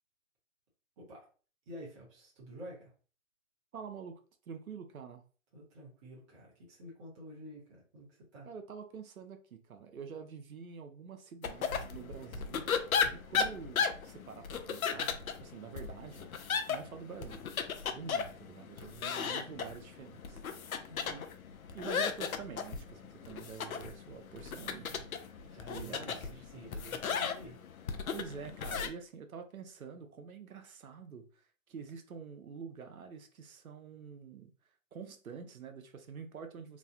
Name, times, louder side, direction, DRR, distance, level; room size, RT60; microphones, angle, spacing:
voice 1, 1.7-2.9 5.5-8.5 20.9-21.3 25.4-27.6, equal, 25° right, 0.9 m, -49 dB
voice 2, 3.7-4.2 4.5-5.2 8.5-12.7 13.1-16.3 16.7-17.5 17.9-20.4 21.7-25.0 25.7-26.3 28.1-34.5 34.9-36.8, right 6 dB, 85° right, 0.7 m, -47 dB
sound 1, 11.4-28.9, left 6 dB, 85° left, 0.5 m, -36 dB
3.1 x 2.1 x 2.6 m
hypercardioid pair, 140°, 41 cm